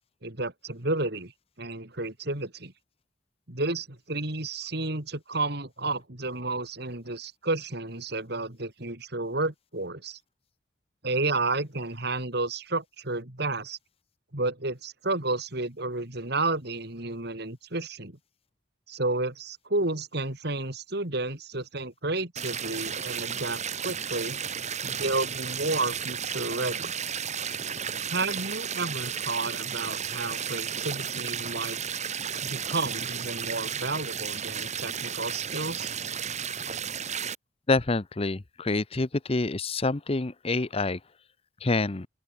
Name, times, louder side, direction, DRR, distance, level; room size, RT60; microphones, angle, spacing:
voice 1, 0.2-1.3 1.6-2.7 3.5-10.2 11.0-13.8 14.3-18.2 18.9-24.4 24.8-26.9 28.0-31.8 32.4-35.9, right 2 dB, 60° right, 3.6 m, -31 dB
sound 1, 22.4-37.3, right 7 dB, 40° right, 3.8 m, -33 dB
voice 2, 37.7-41.0 41.6-42.1, left 3 dB, 30° left, 0.8 m, -27 dB
open air
head